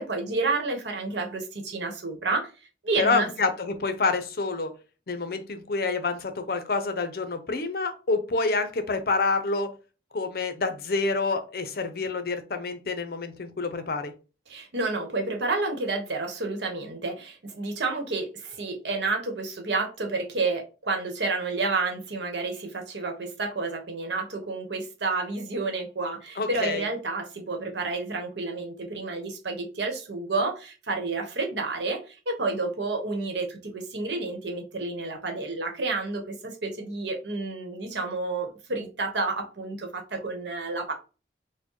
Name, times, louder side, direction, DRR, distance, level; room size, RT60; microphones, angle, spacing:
voice 1, 0.0-2.5 2.8-3.3 14.5-40.9, right 3 dB, 80° right, 1.0 m, -30 dB
voice 2, 3.0-4.7 5.1-9.7 10.1-14.1 26.4-26.9, left 3 dB, 55° left, 0.6 m, -27 dB
4.5 x 2.1 x 2.9 m
head